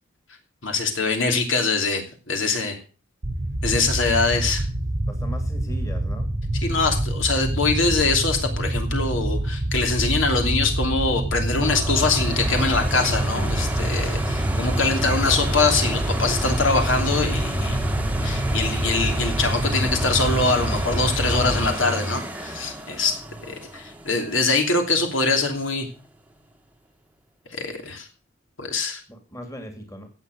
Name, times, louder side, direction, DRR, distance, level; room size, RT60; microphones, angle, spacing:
voice 1, 0.6-2.8 3.6-4.7 6.6-17.8 18.2-23.2 23.5-25.9 27.5-28.1 28.6-29.0, left 3 dB, 70° left, 4 dB, 2.9 m, -23 dB
sound 1, 3.2-21.7, right 1 dB, 35° right, 0.9 m, -26 dB
voice 2, 5.1-6.3 29.1-30.1, equal, 15° left, 5 dB, 2.3 m, -38 dB
sound 2, 11.6-25.3 25.8-25.9, equal, 5° right, 1.3 m, -30 dB
17.0 x 7.1 x 6.6 m, 0.37 s
head